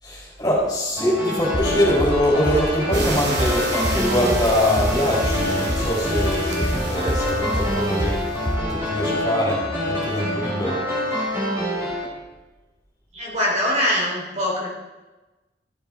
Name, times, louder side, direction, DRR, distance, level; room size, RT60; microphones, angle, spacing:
voice 1, 0.0-8.2 8.7-10.8, equal, 25° left, -5 dB, 4.4 m, -23 dB
sound 1, 1.0-12.0, left 1 dB, 15° right, 3.5 m, -26 dB
sound 2, 1.5-9.9, equal, 40° left, 3.1 m, -28 dB
sound 3, 2.9-8.5, right 2 dB, 70° right, 2.4 m, -33 dB
voice 2, 13.1-14.7, equal, 40° right, -4 dB, 3.2 m, -23 dB
14.0 x 7.3 x 4.3 m, 1.1 s
head